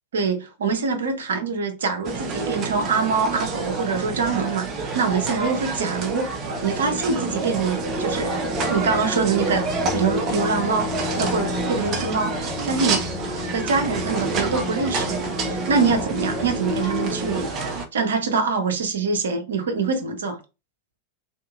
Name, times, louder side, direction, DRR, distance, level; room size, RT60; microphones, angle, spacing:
voice 1, 0.1-6.3 6.6-9.7 9.9-13.1 13.5-17.5 17.9-20.4, right 5 dB, 65° right, 0.8 m, -24 dB
sound 1, 2.0-17.8, right 3 dB, 35° right, 0.7 m, -28 dB
sound 2, 6.4-17.5, left 2 dB, 20° left, 1.0 m, -32 dB
3.5 x 2.8 x 2.4 m
figure-of-eight pair, 90°, 0 cm